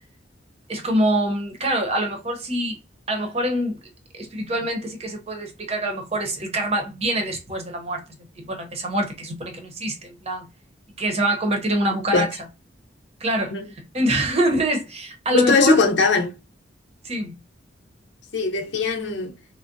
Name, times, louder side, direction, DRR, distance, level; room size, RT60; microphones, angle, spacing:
voice 1, 0.7-2.8 3.1-3.8 4.1-8.0 8.4-10.5 11.0-12.3 13.2-15.8 17.0-17.3, right 1 dB, 35° right, 0.8 m, -25 dB
voice 2, 15.3-16.3 18.3-19.3, left 3 dB, 70° left, 0.6 m, -20 dB
3.4 x 2.2 x 2.6 m
head